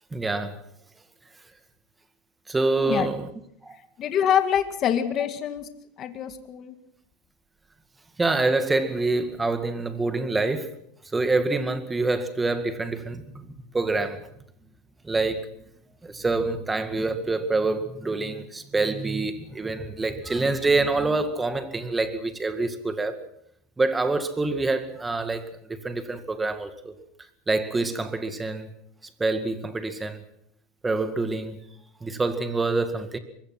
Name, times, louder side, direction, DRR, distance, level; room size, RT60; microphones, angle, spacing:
voice 1, 0.1-0.6 2.5-3.3 3.6-3.8 8.2-10.7 11.1-13.5 13.7-14.2 15.0-15.5 16.0-23.2 23.8-25.4 25.7-26.9 27.5-28.7 29.2-30.2 30.8-31.6 32.0-33.2, right 3 dB, 10° right, 2.1 m, -26 dB
voice 2, 4.0-5.7 6.0-6.7, left 9 dB, 35° left, 2.1 m, -25 dB
24.5 x 21.5 x 6.1 m
supercardioid pair, 145°, 0 cm